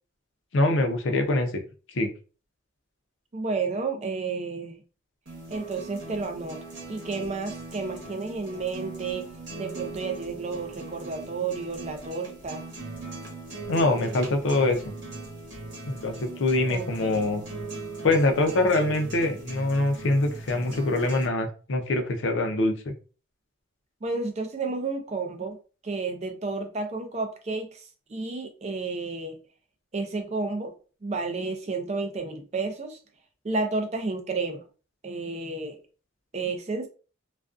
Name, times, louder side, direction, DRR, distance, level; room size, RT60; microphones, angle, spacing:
voice 1, 0.5-1.6 1.9-2.1 13.7-14.8 15.9-17.4 18.0-22.7, left 2 dB, 60° left, 5 dB, 0.5 m, -24 dB
voice 2, 3.3-4.8 5.5-6.6 6.9-9.3 9.6-12.6 16.7-17.2 24.0-25.6 25.8-29.4 29.9-30.8 31.0-33.0 33.4-34.6 35.0-35.8 36.3-36.9, right 3 dB, 30° right, 5 dB, 0.4 m, -31 dB
sound 1, 5.3-21.3, right 2 dB, 60° right, 1.0 m, -39 dB
2.4 x 2.2 x 2.4 m, 0.36 s
head